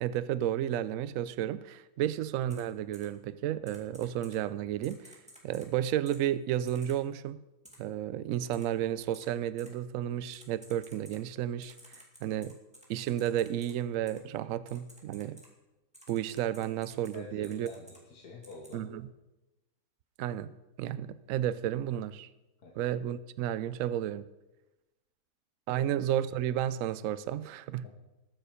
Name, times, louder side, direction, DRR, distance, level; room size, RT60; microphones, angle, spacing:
voice 1, 0.0-5.2 5.4-7.4 7.8-12.6 12.9-15.4 16.1-17.7 18.7-19.1 20.2-20.5 20.8-22.3 22.8-24.3 25.7-27.9, right 11 dB, 70° right, 15 dB, 0.8 m, -32 dB
Typing, 2.5-2.6 2.9-3.1 3.7-4.4 4.8-5.7 6.1-6.2 6.7-7.0 7.6-7.8 8.5-8.6 9.1-9.3 9.6-9.7 10.3-11.2 11.6-13.7 14.1-14.2 14.7-15.5 15.9-17.2 17.4-18.0 18.4-18.7, equal, 5° right, 2.1 m, -54 dB
voice 2, 17.1-18.9 22.6-22.8 25.8-25.9 27.8-27.9, left 3 dB, 70° left, -2 dB, 2.1 m, -47 dB
20.5 x 6.9 x 5.0 m, 1.0 s
omnidirectional pair, 1.8 m